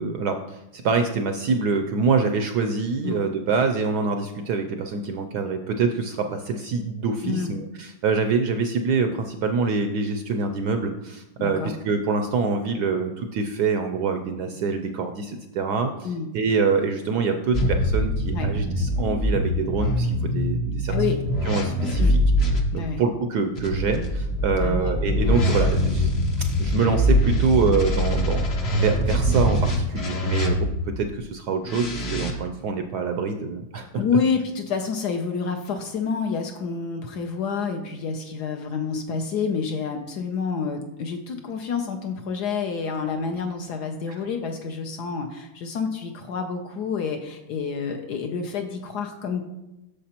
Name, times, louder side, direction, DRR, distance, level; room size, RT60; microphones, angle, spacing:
voice 1, 0.0-16.1 16.3-20.9 21.4-22.2 22.7-26.1 26.6-28.5 28.7-34.0 44.1-44.2, right 4 dB, 75° right, 6 dB, 0.9 m, -25 dB
voice 2, 7.2-7.6 11.4-11.7 16.0-16.3 18.3-18.5 20.9-21.2 22.0-22.2 22.7-23.0 24.6-24.9 33.9-49.4, left 5 dB, 70° left, 5 dB, 1.0 m, -28 dB
sound 1, 17.5-22.6 23.5-30.9 31.6-32.3, equal, 45° left, 0.8 m, -23 dB
8.3 x 6.7 x 2.9 m, 0.95 s
omnidirectional pair, 2.2 m